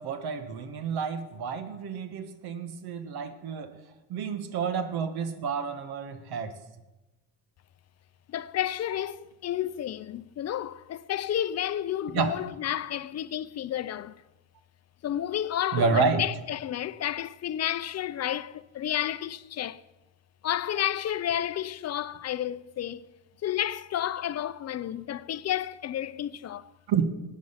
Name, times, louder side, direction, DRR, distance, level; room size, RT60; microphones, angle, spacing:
voice 1, 0.0-3.7 4.1-6.5 12.1-12.4 15.7-16.2 26.9-27.1, right 6 dB, 75° right, 1.5 m, -29 dB
voice 2, 8.3-14.2 15.0-19.8 20.4-23.1 23.4-26.7, left 11 dB, 45° left, 0.5 m, -31 dB
16.5 x 9.3 x 5.7 m
cardioid pair, 105°, 38 cm